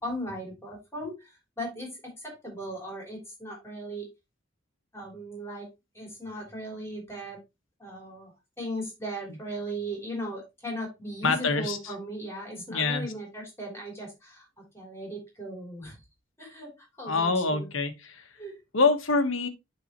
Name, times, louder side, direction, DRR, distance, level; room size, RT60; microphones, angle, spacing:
voice 1, 0.0-4.1 4.9-5.7 5.9-7.4 7.8-8.3 8.6-16.0 16.4-17.7 18.4-18.6, equal, 15° left, 3.4 m, -37 dB
voice 2, 11.2-11.8 12.7-13.1 17.1-18.2 18.7-19.5, left 3 dB, 90° left, 1.3 m, -25 dB
11.5 x 3.9 x 3.0 m
head